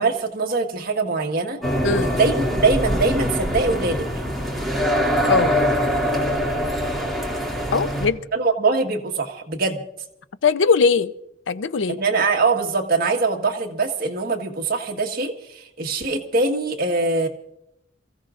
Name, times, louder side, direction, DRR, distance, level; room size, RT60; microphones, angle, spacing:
voice 1, 0.0-1.6 2.1-4.1 8.3-9.8 11.9-17.3, right 3 dB, 55° right, 1.5 m, -22 dB
sound 1, 1.6-8.1, equal, ahead, 2.4 m, -23 dB
voice 2, 7.7-8.2 10.4-11.1 11.5-12.0, left 5 dB, 85° left, 0.6 m, -20 dB
28.0 x 15.0 x 2.5 m
head